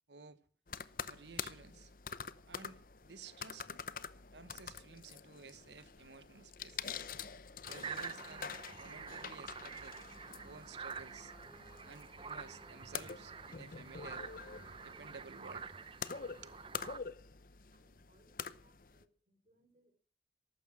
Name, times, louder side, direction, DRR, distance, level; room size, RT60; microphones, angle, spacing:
voice 1, 0.1-0.4 1.0-1.9 2.5-3.8 4.3-7.0 7.7-10.0 10.4-11.3 11.8-14.3 14.8-15.7 16.2-16.6, right 4 dB, 80° right, 1.0 m, -54 dB
sound 1, 0.7-19.0, left 6 dB, 50° left, 0.8 m, -47 dB
sound 2, 7.7-17.0, right 6 dB, 30° right, 0.7 m, -48 dB
Wind instrument woodwind instrument, 8.9-16.1, equal, 15° left, 5.3 m, -66 dB
voice 2, 17.7-19.9, right 1 dB, 45° right, 3.9 m, -72 dB
14.5 x 12.0 x 6.1 m
head